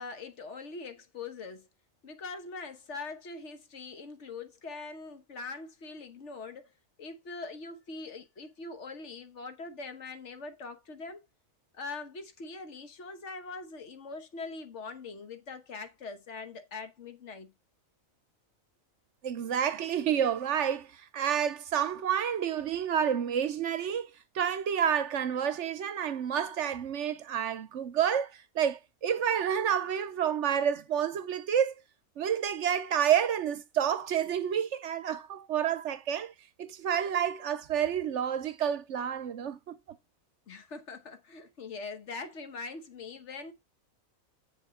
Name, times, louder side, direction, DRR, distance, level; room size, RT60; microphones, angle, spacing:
voice 1, 0.0-1.7 2.0-6.7 7.0-11.2 11.7-17.5 40.5-43.5, left 4 dB, 60° left, 1.4 m, -42 dB
voice 2, 19.2-24.1 24.3-31.8 32.2-36.3 36.6-39.8, right 9 dB, 65° right, 1.0 m, -29 dB
7.7 x 7.1 x 3.7 m
omnidirectional pair, 1.4 m